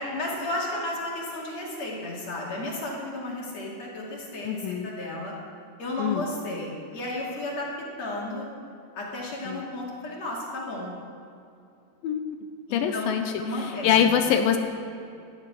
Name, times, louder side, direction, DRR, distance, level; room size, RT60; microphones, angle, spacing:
voice 1, 0.0-5.3 5.8-7.7 8.0-8.5 8.9-10.9 12.7-14.1, left 1 dB, 50° left, -3 dB, 3.3 m, -33 dB
voice 2, 4.4-4.9 6.0-6.2 9.5-9.6 12.0-12.2 12.7-13.2 13.5-14.6, left 8 dB, 75° left, 7 dB, 2.3 m, -24 dB
15.0 x 11.0 x 6.1 m, 2.7 s
omnidirectional pair, 4.4 m